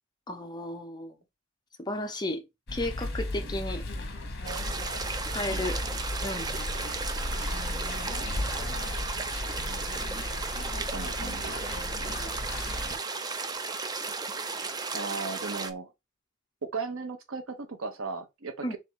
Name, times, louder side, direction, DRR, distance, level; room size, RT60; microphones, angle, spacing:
voice 1, 0.3-1.1 1.8-2.4 2.7-3.8 5.3-5.8 6.2-7.5 12.0-12.3 18.6-18.8, left 1 dB, 20° left, 0.7 m, -34 dB
sound 1, 2.7-13.0, left 1 dB, 55° left, 1.1 m, -35 dB
sound 2, 4.4-15.7, right 4 dB, 20° right, 0.4 m, -35 dB
sound 3, 6.4-15.7, right 1 dB, 40° left, 1.6 m, -57 dB
voice 2, 10.9-11.5 14.9-15.9 16.6-18.8, right 4 dB, 85° right, 0.8 m, -36 dB
3.4 x 3.3 x 4.1 m
head